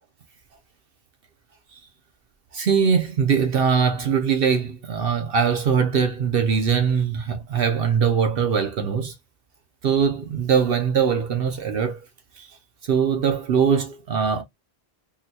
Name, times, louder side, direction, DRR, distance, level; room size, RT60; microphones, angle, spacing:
voice 1, 2.5-9.1 9.8-12.0 12.3-12.5 12.8-14.4, right 6 dB, 65° right, 0.8 m, -21 dB
3.7 x 2.2 x 2.7 m
omnidirectional pair, 1.1 m